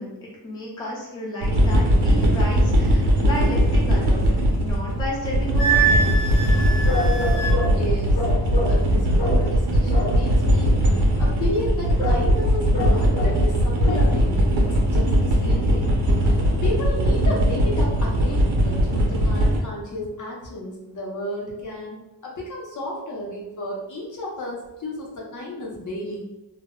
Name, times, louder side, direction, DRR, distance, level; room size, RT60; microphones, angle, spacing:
voice 1, 0.0-6.2, left 1 dB, 10° left, -5 dB, 0.4 m, -32 dB
sound 1, 1.4-19.6, equal, 65° right, 0.7 m, -20 dB
Wind instrument woodwind instrument, 5.6-7.6, right 5 dB, 30° right, 0.6 m, -23 dB
sound 2, 6.9-7.8 8.2-8.8 9.2-9.5 9.9-10.2 12.0-12.3 12.7-13.5 13.8-14.1 14.6-14.7, left 2 dB, 90° left, 0.6 m, -27 dB
voice 2, 7.6-8.3 8.7-10.8 11.2-16.0 16.3-22.0 22.2-26.2, left 1 dB, 45° left, -4 dB, 0.7 m, -32 dB
2.1 x 2.0 x 3.5 m, 1.0 s
wide cardioid pair, 180°, 42 cm